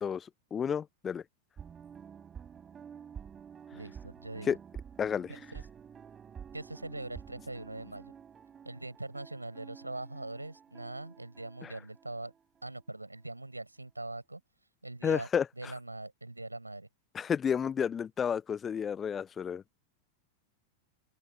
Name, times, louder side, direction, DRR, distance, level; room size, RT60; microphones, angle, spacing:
voice 1, 0.0-1.2 4.5-4.6 5.0-5.3 11.6-11.7 15.0-15.5 17.1-19.6, left 7 dB, 20° left, 0.4 m, -31 dB
sound 1, 1.6-13.0 13.2-13.3, right 7 dB, 20° right, 4.0 m, -50 dB
voice 2, 3.7-4.6 5.5-5.6 6.5-8.1 8.6-12.3 12.6-14.4 14.8-15.3 15.6-16.9, right 2 dB, 85° right, 6.3 m, -42 dB
open air
figure-of-eight pair, 90°, 0 cm